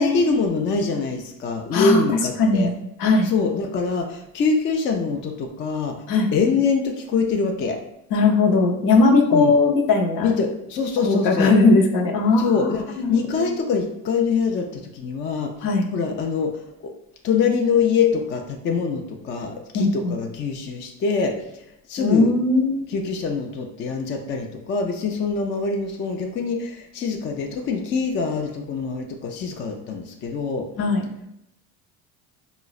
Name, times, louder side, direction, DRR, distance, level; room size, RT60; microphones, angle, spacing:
voice 1, 0.0-2.7 3.2-6.0 6.3-7.8 9.3-9.5 10.2-11.6 12.4-15.6 15.9-16.9 17.2-22.3 22.9-30.7, left 5 dB, 30° left, 3 dB, 0.4 m, -24 dB
voice 2, 1.7-2.0 2.4-2.7 3.0-3.3 6.1-6.3 8.1-10.3 11.0-12.7 13.0-13.5 15.6-15.9 19.7-20.1 22.0-22.8 30.8-31.0, left 3 dB, 65° left, 1 dB, 0.7 m, -18 dB
3.8 x 2.1 x 2.3 m, 0.80 s
supercardioid pair, 80°, 41 cm